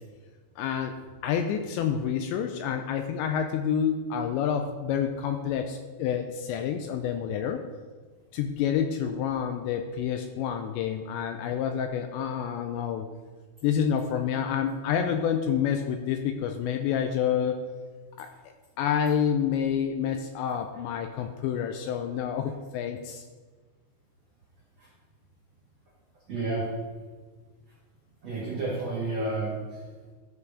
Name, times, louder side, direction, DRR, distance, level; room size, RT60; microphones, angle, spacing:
voice 1, 0.6-0.9 1.2-7.6 8.3-13.1 13.6-17.6 18.2-18.3 18.8-23.2, left 8 dB, 85° left, 6 dB, 2.6 m, -28 dB
voice 2, 26.3-26.7 28.2-29.8, right 2 dB, 85° right, -5 dB, 1.4 m, -31 dB
13.0 x 5.4 x 4.8 m, 1.4 s
omnidirectional pair, 5.6 m